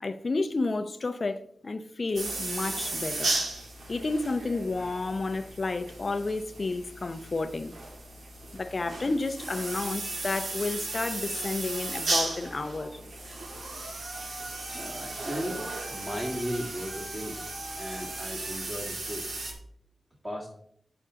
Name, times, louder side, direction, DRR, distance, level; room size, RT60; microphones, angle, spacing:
voice 1, 0.0-3.3 3.9-7.7 8.5-13.0 14.7-14.9, left 3 dB, 45° left, 0.6 m, -31 dB
sound 1, 2.2-19.5, right 2 dB, 75° right, 1.6 m, -35 dB
voice 2, 14.7-15.6 15.9-17.4 17.8-19.3 20.2-20.5, equal, 20° right, 1.7 m, -35 dB
8.4 x 6.9 x 3.7 m
wide cardioid pair, 85°, 0 cm